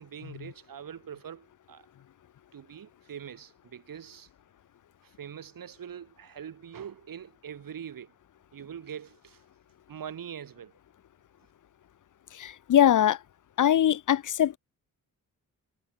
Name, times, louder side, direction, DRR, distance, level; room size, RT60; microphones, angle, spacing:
voice 1, 0.0-1.9 2.5-4.3 5.0-8.1 8.5-9.4 9.9-10.7, right 8 dB, 75° right, 3.9 m, -43 dB
voice 2, 12.4-13.2 13.6-14.6, left 10 dB, 60° left, 0.7 m, -22 dB
cardioid pair, 70°, 35 cm